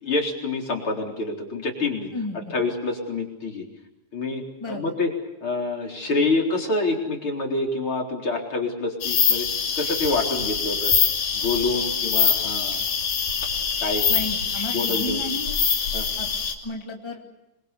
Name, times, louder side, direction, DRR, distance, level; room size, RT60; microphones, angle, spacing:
voice 1, 0.0-2.1 2.3-3.7 4.1-5.1 5.4-9.5 9.8-10.9 11.3-12.8 13.8-14.0 14.7-15.2 15.9-16.1, left 3 dB, 40° left, 0 dB, 4.7 m, -27 dB
voice 2, 2.1-2.5 4.6-4.8 14.1-15.5 16.2-16.3 16.6-17.2, left 2 dB, 10° left, 0 dB, 2.4 m, -32 dB
sound 1, 9.0-16.5, left 6 dB, 75° left, 4.3 m, -24 dB
26.0 x 24.0 x 6.9 m, 0.98 s
omnidirectional pair, 3.7 m